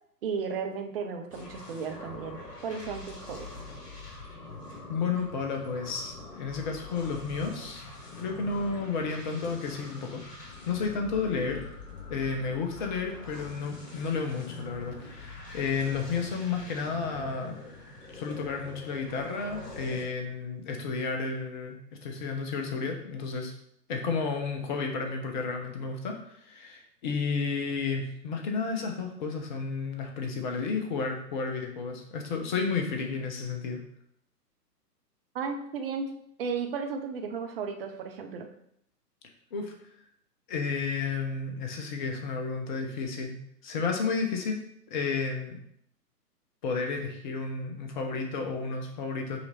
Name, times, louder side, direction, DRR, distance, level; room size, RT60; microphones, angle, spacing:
voice 1, 0.2-3.5 35.3-36.1 36.4-38.5, right 5 dB, 35° right, 5 dB, 0.9 m, -34 dB
sound 1, 1.3-20.0, left 3 dB, 70° left, 2.4 m, -44 dB
voice 2, 4.9-7.9 8.2-11.6 12.1-17.6 18.1-23.5 23.9-33.8 39.5-39.7 40.5-44.6 44.9-45.6 46.6-49.4, left 4 dB, 30° left, 3 dB, 1.0 m, -32 dB
5.9 x 4.7 x 4.3 m, 0.72 s
figure-of-eight pair, 125°, 49 cm